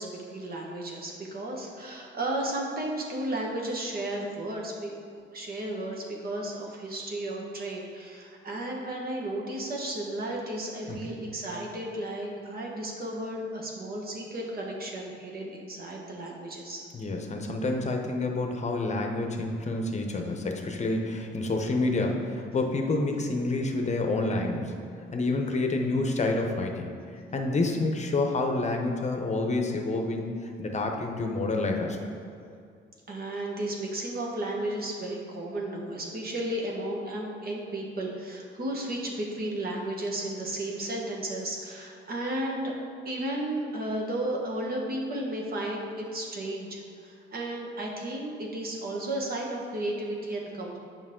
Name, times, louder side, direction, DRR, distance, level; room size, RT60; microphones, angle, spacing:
voice 1, 0.0-4.9 5.3-16.8 33.1-42.7 43.0-50.8, right 1 dB, 50° right, -1 dB, 1.4 m, -33 dB
voice 2, 10.9-11.2 16.9-24.7 25.1-26.9 27.3-30.3 30.6-32.0, left 2 dB, 35° left, 3 dB, 0.8 m, -28 dB
7.3 x 5.2 x 3.7 m, 2.4 s
cardioid pair, 90°, 20 cm